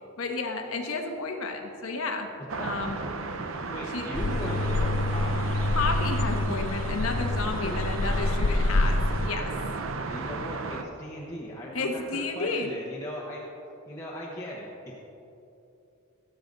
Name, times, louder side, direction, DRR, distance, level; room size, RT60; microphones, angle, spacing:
voice 1, 0.2-2.3 2.6-3.0 3.9-4.1 5.8-9.5 11.7-12.7, left 3 dB, 80° left, 3 dB, 1.3 m, -31 dB
sound 1, 2.5-10.8, right 3 dB, 70° right, 0.7 m, -35 dB
voice 2, 3.7-5.6 7.1-7.2 7.6-7.9 10.1-13.5 13.9-15.0, equal, 15° left, -6 dB, 1.1 m, -38 dB
sound 2, 4.1-9.3, left 2 dB, 65° left, 0.6 m, -27 dB
17.5 x 6.9 x 4.0 m, 2.8 s
head